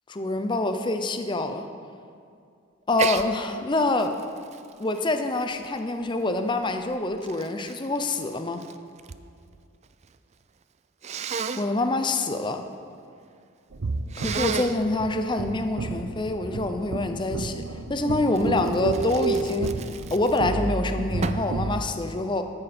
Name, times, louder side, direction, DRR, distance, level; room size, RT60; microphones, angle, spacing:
voice 1, 0.1-1.7 2.9-4.2 4.8-8.6 11.6-12.6 14.2-17.6 17.9-19.7 20.1-22.4, left 2 dB, 20° left, 7 dB, 0.6 m, -26 dB
Sneeze, 2.9-3.3 3.7-6.1 6.8-9.2 9.5-10.2 11.0-11.7 14.1-14.8 18.3-20.6 21.2-21.5, right 6 dB, 30° right, 0.3 m, -33 dB
sound 1, 13.7-21.8, right 3 dB, 75° right, 0.7 m, -31 dB
14.0 x 9.8 x 4.3 m, 2.3 s
head